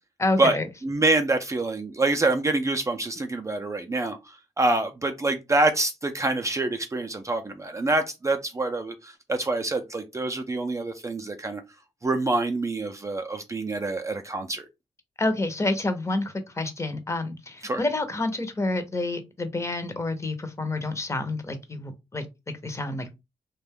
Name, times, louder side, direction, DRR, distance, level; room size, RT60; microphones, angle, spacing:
voice 1, 0.2-0.7 15.2-22.2 22.6-23.1, left 2 dB, 25° left, 0.7 m, -28 dB
voice 2, 0.8-4.2 4.6-11.6 12.0-14.7 17.6-17.8, right 2 dB, 25° right, 0.4 m, -26 dB
2.5 x 2.2 x 3.5 m
cardioid pair, 90°, 12 cm